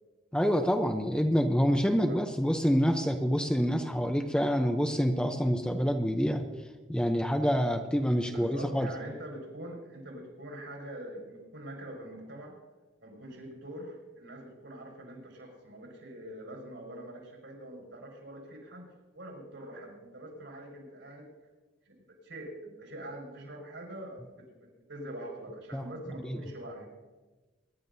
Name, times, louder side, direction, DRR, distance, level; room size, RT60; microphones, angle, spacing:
voice 1, 0.3-6.4 6.9-8.9 25.7-25.8 26.2-26.4, equal, 5° left, 5 dB, 0.6 m, -27 dB
voice 2, 8.3-12.6 13.0-21.3 21.8-21.9 22.2-26.9, right 1 dB, 75° right, 0 dB, 5.0 m, -44 dB
23.5 x 11.0 x 2.7 m, 1.3 s
head